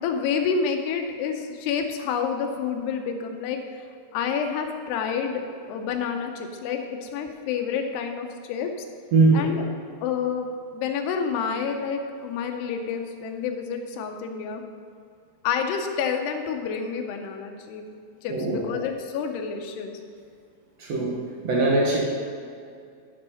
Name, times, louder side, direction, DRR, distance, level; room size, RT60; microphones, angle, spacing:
voice 1, 0.0-3.8 4.1-8.7 9.3-9.6 10.0-10.5 10.7-14.6 15.4-17.8 18.2-20.0, left 6 dB, 80° left, 4 dB, 2.9 m, -29 dB
voice 2, 9.1-9.5 18.3-18.6 20.8-22.0, right 3 dB, 70° right, -3 dB, 1.5 m, -21 dB
11.5 x 5.6 x 5.6 m, 2.3 s
omnidirectional pair, 4.8 m